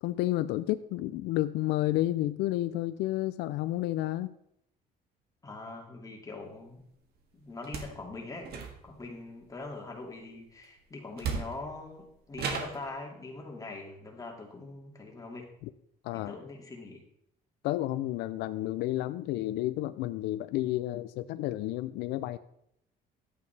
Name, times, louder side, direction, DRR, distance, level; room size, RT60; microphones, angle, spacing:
voice 1, 0.0-4.3 16.0-16.4 17.6-22.4, left 15 dB, 90° left, 13 dB, 0.4 m, -31 dB
voice 2, 5.4-6.8 7.4-8.5 8.8-15.5 16.1-17.0, left 2 dB, 20° left, 0 dB, 2.2 m, -42 dB
sound 1, 7.6-8.0 8.4-9.1 10.6-10.7 11.2-11.8 12.3-12.9, right 5 dB, 70° right, 1.6 m, -35 dB
11.0 x 8.5 x 3.3 m, 0.76 s
cardioid pair, 110°, 17 cm